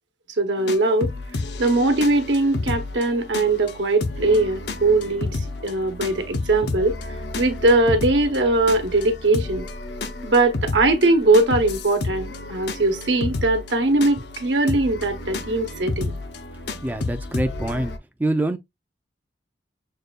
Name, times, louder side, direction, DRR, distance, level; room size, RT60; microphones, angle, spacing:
voice 1, 0.4-1.1 1.6-7.0 7.4-9.7 10.2-16.2, right 2 dB, 80° right, 0.9 m, -20 dB
sound 1, 0.6-18.0, left 3 dB, 65° left, 0.6 m, -31 dB
voice 2, 16.8-17.9 18.2-18.6, right 1 dB, 10° right, 0.4 m, -24 dB
6.5 x 2.2 x 2.3 m
head